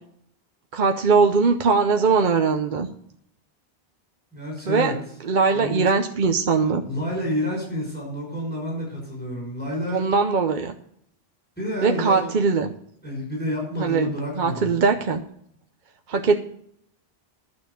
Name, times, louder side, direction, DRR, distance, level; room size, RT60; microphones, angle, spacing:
voice 1, 0.7-2.9 4.7-4.9 5.2-6.8 9.9-10.8 11.8-12.7 13.8-15.2 16.1-16.4, right 4 dB, 50° right, 5 dB, 0.8 m, -21 dB
voice 2, 4.3-4.9 5.5-5.8 6.9-10.0 11.6-12.3 13.0-14.7, equal, 10° left, -3 dB, 5.8 m, -29 dB
12.0 x 6.6 x 6.8 m, 0.69 s
omnidirectional pair, 1.1 m